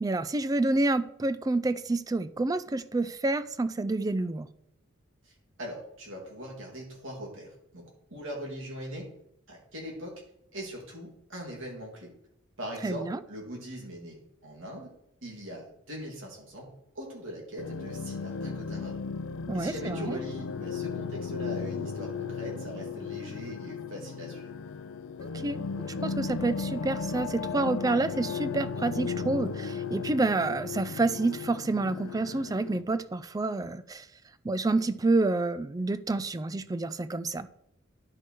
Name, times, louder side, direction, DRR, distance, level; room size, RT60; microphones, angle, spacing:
voice 1, 0.0-4.5 12.8-13.2 19.5-20.2 25.2-25.6 26.0-34.1 34.4-37.5, right 2 dB, 15° right, 13 dB, 0.3 m, -28 dB
voice 2, 5.2-7.8 8.1-9.1 9.5-10.1 10.5-12.1 12.6-14.9 15.2-16.7 16.9-18.9 19.5-24.6, equal, 70° right, -2 dB, 2.9 m, -41 dB
sound 1, 17.6-32.8, left 5 dB, 80° left, 0.4 m, -35 dB
10.5 x 4.6 x 4.5 m, 0.76 s
head